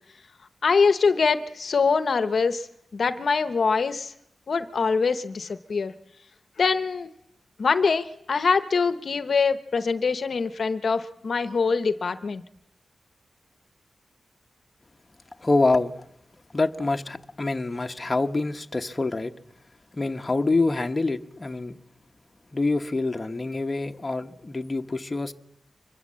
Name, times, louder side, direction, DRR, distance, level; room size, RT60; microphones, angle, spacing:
voice 1, 0.6-2.7 2.9-4.1 4.5-5.9 6.6-7.1 7.6-12.4, left 5 dB, 55° left, 0.9 m, -23 dB
voice 2, 15.4-15.9 16.5-19.3 20.0-21.8 22.5-25.3, left 3 dB, 25° left, 1.0 m, -26 dB
25.0 x 22.5 x 7.5 m
wide cardioid pair, 155°, 0 cm